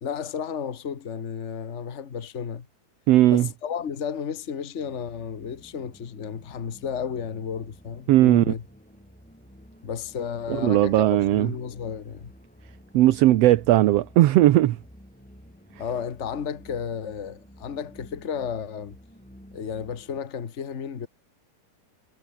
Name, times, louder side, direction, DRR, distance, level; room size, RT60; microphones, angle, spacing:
voice 1, 0.0-2.7 3.3-8.6 9.8-12.3 15.8-19.0 19.5-21.1, left 7 dB, 65° left, 0.7 m, -33 dB
voice 2, 3.1-3.5 8.1-8.5 10.5-11.5 12.9-14.8, right 15 dB, 70° right, 1.7 m, -18 dB
sound 1, 4.8-20.2, equal, ahead, 5.3 m, -51 dB
omnidirectional pair, 3.4 m